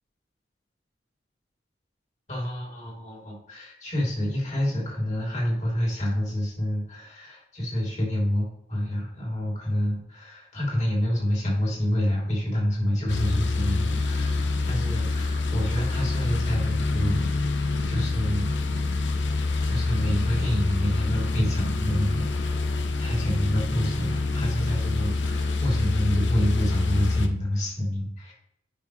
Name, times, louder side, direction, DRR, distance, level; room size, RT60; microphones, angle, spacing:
voice 1, 2.3-18.5 19.6-28.3, left 1 dB, 40° left, -3 dB, 3.6 m, -28 dB
sound 1, 13.1-27.3, left 3 dB, 75° left, 0.8 m, -26 dB
10.0 x 5.9 x 3.3 m, 0.76 s
head